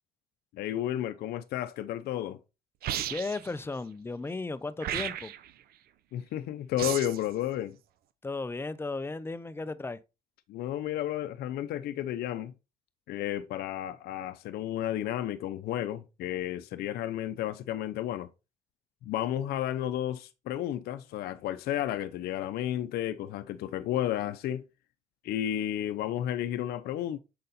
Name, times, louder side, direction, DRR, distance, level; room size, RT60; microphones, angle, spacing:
voice 1, 0.5-2.4 6.1-7.8 10.5-12.5 13.1-18.3 19.0-24.6 25.2-27.2, left 12 dB, 70° left, 0.6 m, -32 dB
sound 1, 2.8-3.5 4.8-5.5 6.8-7.3, right 11 dB, 65° right, 0.6 m, -34 dB
voice 2, 3.1-5.3 8.2-10.0, left 3 dB, 15° left, 0.5 m, -35 dB
6.6 x 4.1 x 3.9 m
cardioid pair, 110°, 17 cm